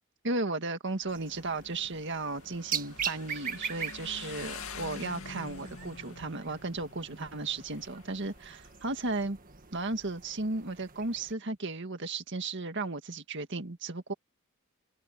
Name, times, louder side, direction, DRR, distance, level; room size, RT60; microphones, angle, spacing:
voice 1, 0.2-9.4 9.7-14.1, right 3 dB, 60° right, 1.9 m, -35 dB
Motorcycle, 0.9-9.1, left 4 dB, 85° left, 2.5 m, -47 dB
sound 1, 1.1-11.3, right 7 dB, 40° right, 1.6 m, -42 dB
head